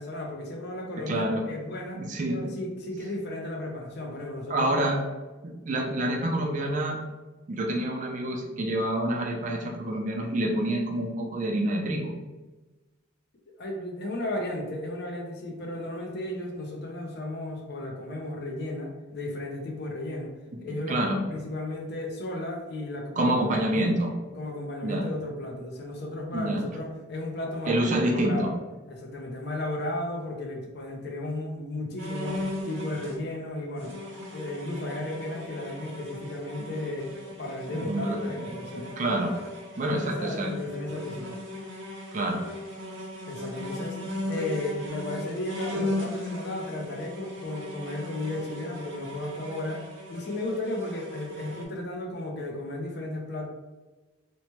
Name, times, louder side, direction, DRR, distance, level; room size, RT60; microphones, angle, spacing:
voice 1, 0.0-2.0 2.3-4.7 13.6-20.3 20.6-23.9 24.4-27.7 28.0-28.5 28.9-33.9 34.3-37.1 37.4-38.9 39.8-41.4 43.3-44.0 44.3-53.5, left 1 dB, 55° left, 1 dB, 0.5 m, -34 dB
voice 2, 1.1-1.4 2.0-2.5 4.5-5.0 5.4-7.0 7.5-12.1 20.9-21.2 23.2-24.1 24.8-25.1 26.3-26.6 27.7-28.5 36.6-36.7 37.7-38.5 38.7-39.3 39.8-40.5 42.1-42.4, right 1 dB, 40° right, 0 dB, 0.4 m, -27 dB
sound 1, 32.0-33.2 33.7-51.6, left 1 dB, 70° right, 0.7 m, -38 dB
2.9 x 2.2 x 2.9 m, 1.2 s
head